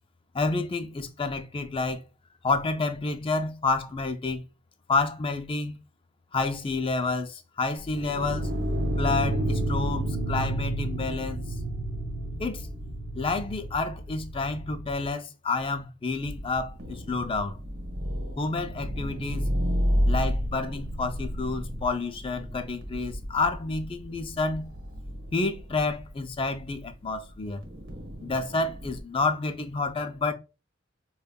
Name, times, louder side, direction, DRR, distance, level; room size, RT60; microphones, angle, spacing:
voice 1, 0.3-2.0 2.4-4.4 4.9-5.8 6.3-8.5 9.0-11.4 12.4-12.7 13.1-17.6 18.4-19.5 20.1-24.7 25.3-27.6 28.2-30.3, left 3 dB, 25° left, 0.4 m, -29 dB
sound 1, 7.8-15.1, right 1 dB, 60° right, 0.5 m, -31 dB
sound 2, 16.2-29.0, equal, 80° right, 1.1 m, -32 dB
5.1 x 2.3 x 2.2 m
head